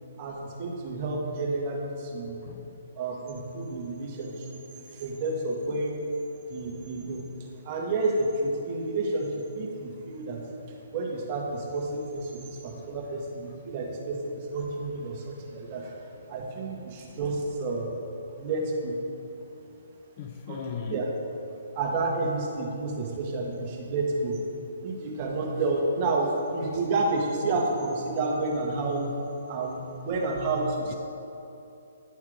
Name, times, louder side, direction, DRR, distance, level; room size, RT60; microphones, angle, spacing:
voice 1, 0.2-2.4 2.9-4.6 4.9-6.0 6.5-7.2 7.6-10.4 10.9-15.9 16.3-18.0 18.4-18.9 20.5-20.6 20.9-21.1 21.7-24.4 24.8-29.1 29.5-30.9, right 2 dB, 35° right, -1 dB, 1.3 m, -30 dB
voice 2, 2.4-2.8 12.8-12.9 20.2-21.0 30.9-31.0, left 7 dB, 40° left, 6 dB, 0.5 m, -38 dB
10.5 x 3.6 x 4.9 m, 2.8 s
hypercardioid pair, 135°, 0 cm